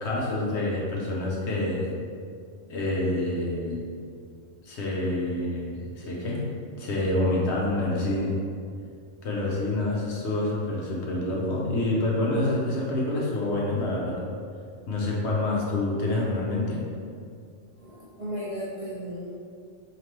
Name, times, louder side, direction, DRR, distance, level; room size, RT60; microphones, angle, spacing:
voice 1, 0.0-1.9 2.7-3.9 4.6-6.4 6.8-8.4 9.2-14.2 14.9-16.8, left 2 dB, 65° left, -4 dB, 1.0 m, -27 dB
voice 2, 17.8-19.3, equal, 40° right, -9 dB, 0.5 m, -35 dB
4.4 x 2.9 x 3.2 m, 2.2 s
omnidirectional pair, 1.3 m